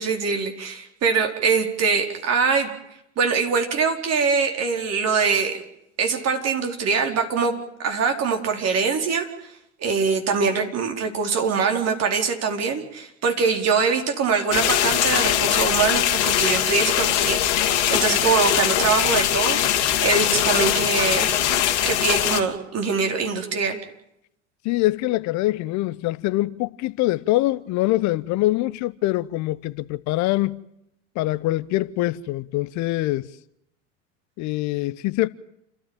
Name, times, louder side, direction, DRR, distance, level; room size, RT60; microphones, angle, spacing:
voice 1, 0.0-2.7 3.2-5.6 6.0-7.5 7.8-9.5 9.8-23.8, right 5 dB, 45° right, 4.5 m, -23 dB
sound 1, 14.5-22.4, left 11 dB, 65° left, 2.6 m, -21 dB
voice 2, 24.6-30.6 31.1-33.3 34.4-35.3, left 18 dB, 50° left, 0.9 m, -24 dB
29.0 x 14.0 x 9.1 m
hypercardioid pair, 80°, 36 cm